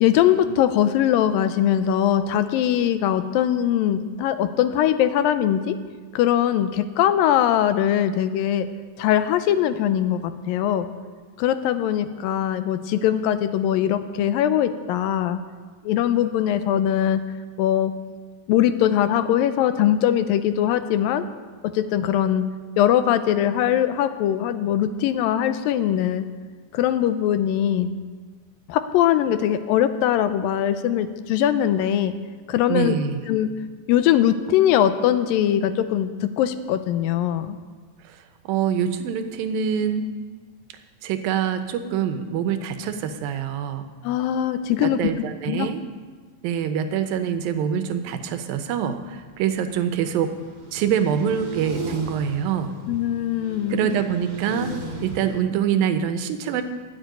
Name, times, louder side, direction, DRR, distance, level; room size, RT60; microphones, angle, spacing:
voice 1, 0.0-5.8 6.1-8.7 9.0-10.9 11.4-15.4 15.8-17.2 17.6-17.9 18.5-21.3 21.7-22.5 22.8-26.3 26.7-27.9 28.7-32.1 32.5-32.9 33.3-33.5 33.9-36.1 36.4-37.6 44.0-45.0 45.5-45.7 52.9-53.9, left 10 dB, 80° left, 11 dB, 2.4 m, -21 dB
voice 2, 32.7-33.2 38.1-38.2 38.5-40.1 41.0-43.8 44.8-45.8 46.4-50.3 50.7-52.7 53.7-54.7 55.0-56.6, right 8 dB, 80° right, 8 dB, 2.6 m, -25 dB
sound 1, 48.9-55.4, right 2 dB, 45° right, 2.8 m, -36 dB
13.0 x 8.2 x 9.3 m, 1.5 s
omnidirectional pair, 4.1 m